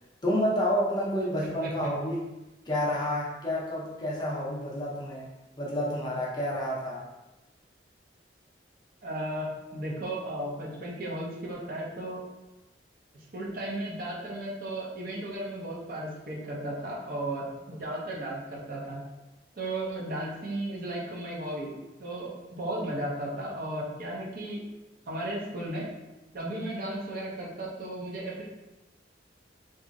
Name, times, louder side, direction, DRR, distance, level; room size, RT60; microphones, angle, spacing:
voice 1, 0.2-2.3 2.7-5.3 5.6-7.0, equal, 25° left, -5 dB, 0.6 m, -29 dB
voice 2, 9.0-12.2 13.3-19.0 19.6-21.7 22.0-24.6 25.1-25.9 26.3-28.4, right 1 dB, 50° right, -4 dB, 0.7 m, -35 dB
2.9 x 2.4 x 2.5 m, 1.0 s
head